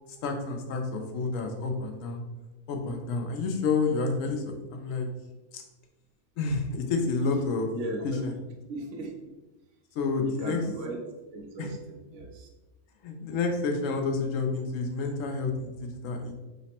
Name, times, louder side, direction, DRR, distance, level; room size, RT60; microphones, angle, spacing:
voice 1, 0.2-2.2 2.7-5.1 5.5-5.6 6.4-7.7 8.0-8.3 9.9-10.6 11.6-11.7 13.0-16.3, left 4 dB, 85° left, 3 dB, 1.0 m, -29 dB
voice 2, 7.7-8.3 8.7-9.1 10.2-11.0 11.3-12.5, right 2 dB, 70° right, 2 dB, 1.0 m, -37 dB
3.3 x 2.0 x 4.2 m, 1.1 s
omnidirectional pair, 1.3 m